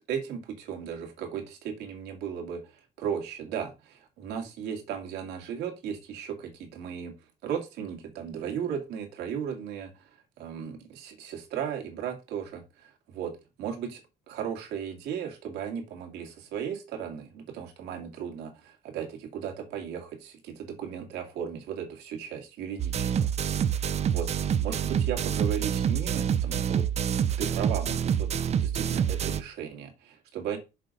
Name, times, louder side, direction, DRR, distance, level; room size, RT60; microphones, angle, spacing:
voice 1, 0.1-7.1 7.4-10.1 10.4-14.0 14.3-23.3 23.7-24.3 24.6-26.9 27.4-30.6, right 8 dB, 85° right, 2.3 m, -36 dB
sound 1, 22.8-29.4, right 8 dB, 40° right, 0.6 m, -27 dB
6.6 x 4.0 x 5.2 m
cardioid pair, 110°, 17 cm